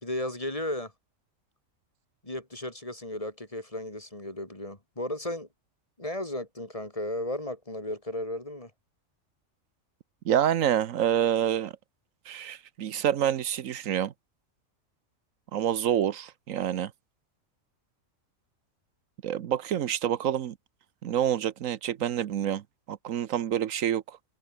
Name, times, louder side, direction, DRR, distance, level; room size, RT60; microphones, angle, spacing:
voice 1, 0.0-0.9 2.2-5.5 6.0-8.7, left 1 dB, 25° left, 3.7 m, -34 dB
voice 2, 10.2-11.7 12.3-14.1 15.5-16.9 19.2-20.5 21.0-22.6 22.9-24.2, right 10 dB, 80° right, 1.2 m, -27 dB
omnidirectional pair, 1.4 m